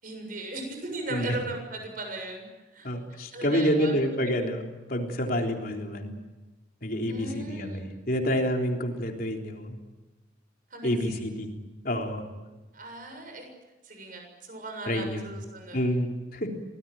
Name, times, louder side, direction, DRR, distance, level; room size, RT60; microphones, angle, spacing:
voice 1, 0.0-4.0 7.1-7.9 10.7-11.3 12.7-13.5 13.8-15.8, right 2 dB, 45° right, 4 dB, 7.0 m, -38 dB
voice 2, 2.8-6.1 6.8-9.8 10.8-11.5 11.8-12.2 14.9-15.3 15.7-16.5, equal, 45° left, 2 dB, 3.6 m, -28 dB
25.5 x 19.0 x 9.1 m, 1.1 s
head